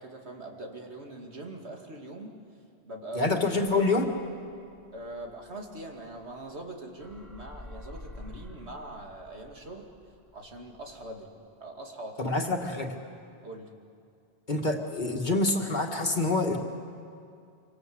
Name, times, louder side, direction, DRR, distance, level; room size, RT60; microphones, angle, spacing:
voice 1, 0.0-2.4 2.8-3.4 3.7-3.8 4.9-9.9 10.3-11.3 11.6-12.4 13.4-13.7, right 1 dB, 80° right, 1 dB, 2.7 m, -42 dB
voice 2, 3.1-4.1 12.2-12.9 14.5-16.6, left 2 dB, 45° left, 2 dB, 2.1 m, -26 dB
sound 1, 3.8-6.7 7.0-11.2, left 1 dB, ahead, 3.3 m, -49 dB
26.5 x 25.0 x 8.0 m, 2.4 s
omnidirectional pair, 1.1 m